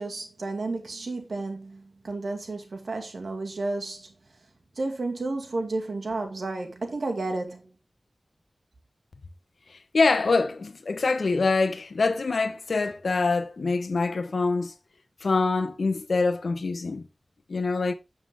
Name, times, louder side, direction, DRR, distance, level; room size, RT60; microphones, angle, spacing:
voice 1, 0.0-4.1 4.8-7.6, right 2 dB, 80° right, 2.1 m, -32 dB
voice 2, 9.9-14.7 15.2-17.1 17.5-17.9, left 3 dB, 85° left, 1.0 m, -25 dB
7.5 x 7.0 x 3.6 m
wide cardioid pair, 70°, 0 cm